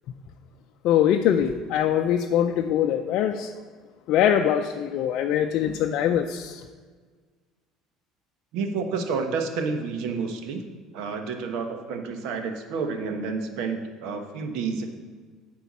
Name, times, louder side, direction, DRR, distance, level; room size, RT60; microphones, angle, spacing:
voice 1, 0.8-3.5 4.1-6.6, left 10 dB, 60° left, 4 dB, 0.5 m, -23 dB
voice 2, 8.5-10.6 10.9-14.9, right 5 dB, 75° right, 6 dB, 1.1 m, -29 dB
9.3 x 4.5 x 7.3 m, 1.5 s
cardioid pair, 120°, 0 cm